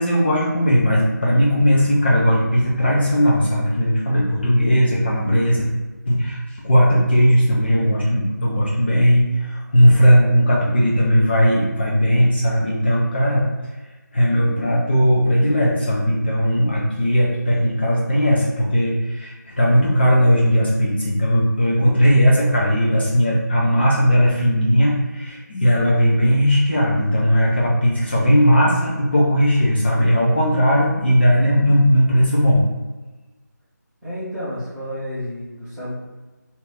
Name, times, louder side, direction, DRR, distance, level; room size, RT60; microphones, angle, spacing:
voice 1, 0.0-5.6 6.1-13.5 14.1-32.6, equal, 35° left, -5 dB, 0.6 m, -17 dB
voice 2, 34.0-35.9, equal, 5° right, -17 dB, 0.8 m, -30 dB
2.8 x 2.6 x 3.4 m, 1.2 s
figure-of-eight pair, 160°, 10 cm